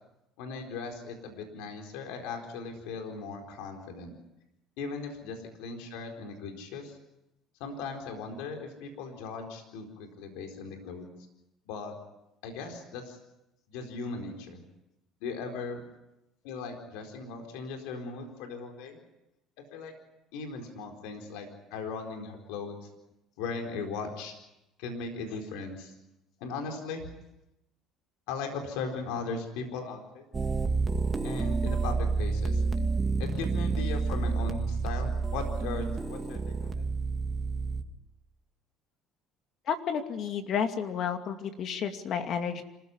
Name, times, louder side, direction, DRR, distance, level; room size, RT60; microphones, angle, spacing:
voice 1, 0.4-4.1 4.8-7.0 7.6-11.1 11.7-11.9 12.4-13.2 13.7-14.6 15.2-15.8 16.4-19.0 19.6-19.9 20.3-22.9 23.4-24.3 24.8-25.9 26.4-27.1 28.3-30.3 31.2-32.6 33.2-36.8, left 4 dB, 85° left, 3 dB, 4.3 m, -38 dB
sound 1, 30.3-37.8, right 4 dB, 25° right, 2.1 m, -29 dB
voice 2, 39.7-42.6, left 7 dB, 60° left, 7 dB, 2.5 m, -31 dB
26.5 x 15.5 x 9.7 m, 0.90 s
supercardioid pair, 90°, 0 cm